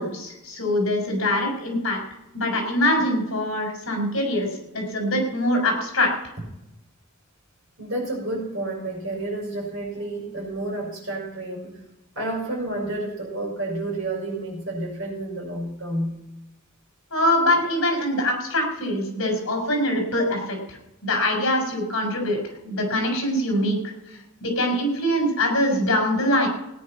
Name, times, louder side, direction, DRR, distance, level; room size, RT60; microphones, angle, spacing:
voice 1, 0.0-2.0 2.3-4.5 4.7-6.1 17.1-22.4 22.6-26.5, left 1 dB, 60° left, 2 dB, 4.9 m, -23 dB
voice 2, 7.8-11.8 12.2-16.2, right 2 dB, 60° right, -1 dB, 5.6 m, -30 dB
17.0 x 9.6 x 5.9 m, 0.90 s
head